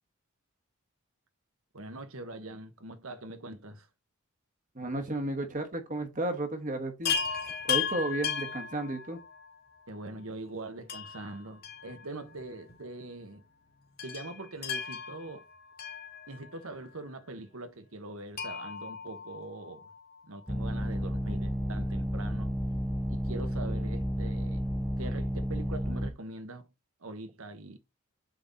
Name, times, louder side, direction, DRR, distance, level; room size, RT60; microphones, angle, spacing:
voice 1, 1.7-3.9 9.9-13.4 14.0-15.5 16.3-19.9 20.2-22.5 23.1-24.7 25.0-26.7 27.0-27.8, right 2 dB, 75° right, 1.2 m, -42 dB
voice 2, 4.7-7.1 7.7-9.2, right 2 dB, 35° right, 1.2 m, -33 dB
Chime, 7.0-9.5 10.9-12.4 12.7-12.8 14.0-16.7 18.3-20.0 21.5-21.6 21.8-21.9, left 7 dB, 45° left, 1.9 m, -36 dB
sound 1, 20.5-26.1, equal, ahead, 0.5 m, -31 dB
7.7 x 3.9 x 4.0 m
head